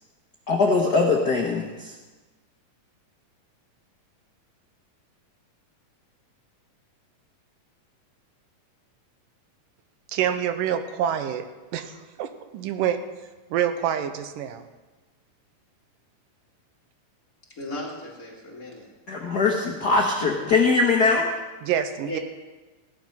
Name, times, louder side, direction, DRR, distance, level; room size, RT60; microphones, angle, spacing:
voice 1, 0.5-1.9 19.1-21.3, left 4 dB, 60° left, 0 dB, 1.0 m, -21 dB
voice 2, 10.1-13.0 13.5-14.7 21.6-22.2, right 9 dB, 85° right, 9 dB, 2.5 m, -27 dB
voice 3, 17.6-18.9 22.1-22.2, left 1 dB, 30° left, -3 dB, 2.4 m, -36 dB
16.0 x 11.0 x 5.7 m, 1.2 s
omnidirectional pair, 3.8 m